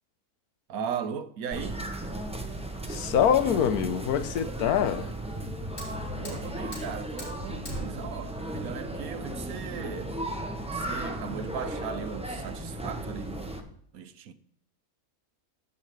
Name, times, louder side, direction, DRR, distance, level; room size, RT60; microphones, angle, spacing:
voice 1, 0.7-1.9 6.2-10.1 10.7-13.7 13.9-14.3, right 7 dB, 75° right, 1.2 m, -37 dB
sound 1, 1.5-13.6, right 1 dB, 5° right, 0.7 m, -35 dB
voice 2, 2.9-5.1, left 8 dB, 80° left, 1.3 m, -25 dB
Fire, 5.1-11.1, right 1 dB, 55° left, 4.6 m, -45 dB
15.5 x 5.7 x 3.1 m
omnidirectional pair, 1.6 m